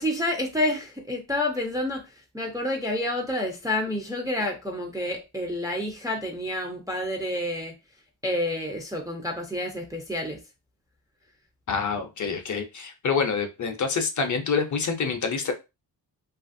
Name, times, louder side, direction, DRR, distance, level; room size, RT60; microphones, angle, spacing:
voice 1, 0.0-2.1 2.3-7.7 8.2-10.4, left 1 dB, 10° right, 0.4 m, -29 dB
voice 2, 11.7-15.5, left 5 dB, 45° left, 0.5 m, -27 dB
2.8 x 2.4 x 2.5 m
wide cardioid pair, 165°, 42 cm